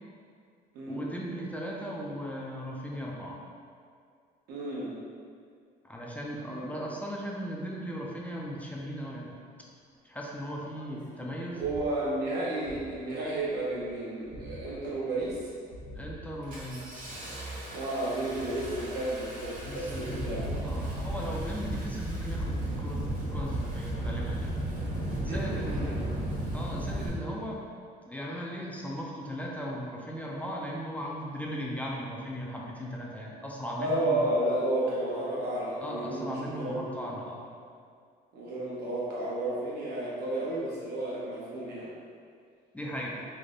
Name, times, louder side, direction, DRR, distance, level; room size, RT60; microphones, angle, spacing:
voice 1, 0.9-3.4 5.8-9.4 10.0-11.6 16.0-17.1 19.7-20.3 20.6-23.0 23.3-24.6 25.2-26.0 26.5-27.6 28.1-34.2 35.8-37.4 42.7-43.3, equal, 10° left, -3 dB, 0.4 m, -37 dB
voice 2, 4.5-4.9 6.4-6.8 11.5-15.4 17.7-20.5 25.1-26.1 33.8-37.0 38.3-41.9, right 1 dB, 75° right, -6 dB, 0.9 m, -32 dB
Engine starting, 10.8-10.9 11.6-11.9 12.6-12.9 13.3-13.8 14.2-14.8 15.2-15.4 15.7-27.1, right 1 dB, 50° right, 1.1 m, -35 dB
3.3 x 2.0 x 3.7 m, 2.2 s
cardioid pair, 110°, 17 cm